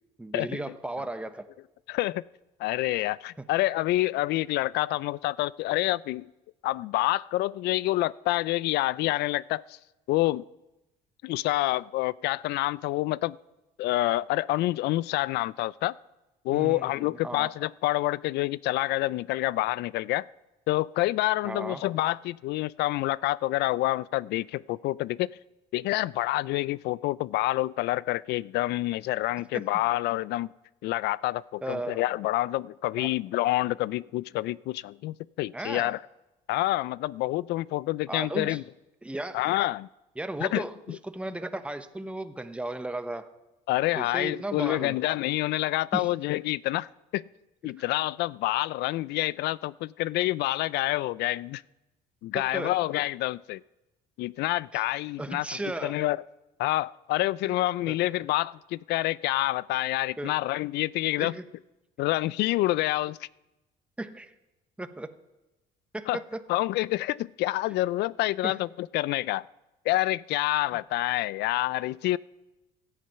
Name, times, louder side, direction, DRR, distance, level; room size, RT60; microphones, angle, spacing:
voice 1, 0.2-1.5 3.4-3.5 16.5-17.5 21.4-21.9 29.5-29.6 31.6-32.0 33.0-33.1 35.5-35.9 38.1-38.6 39.0-39.5 40.2-43.3 43.9-45.0 45.9-46.1 47.6-47.7 52.3-52.7 54.7-54.8 55.2-56.0 57.4-57.6 57.9-58.0 60.2-60.3 61.2-61.5 64.0-64.3 64.8-65.1 65.9-66.4 68.4-68.6, right 2 dB, 5° right, 0.9 m, -35 dB
voice 2, 1.9-2.2 2.6-6.3 6.6-9.8 10.1-10.4 11.2-13.4 13.8-15.9 16.4-20.3 20.7-25.3 25.7-30.5 30.8-36.0 36.5-38.6 39.3-39.9 40.4-40.6 43.7-46.9 47.1-47.2 47.6-51.6 52.2-53.6 54.2-55.5 55.8-56.2 56.6-61.4 62.0-63.2 66.1-66.2 66.5-69.4 69.9-72.2, left 17 dB, 80° left, 0.4 m, -27 dB
16.5 x 12.5 x 5.7 m
cardioid pair, 110°, 17 cm